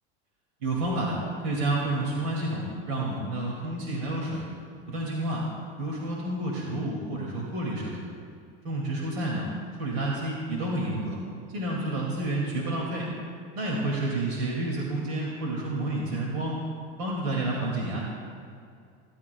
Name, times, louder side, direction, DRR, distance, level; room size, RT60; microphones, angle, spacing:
voice 1, 0.6-4.4 4.9-5.4 5.8-8.0 8.6-9.4 9.8-11.2 11.5-13.1 13.5-16.6 17.0-18.0, right 2 dB, 90° right, -3 dB, 2.5 m, -29 dB
22.5 x 12.0 x 2.3 m, 2.4 s
supercardioid pair, 130°, 31 cm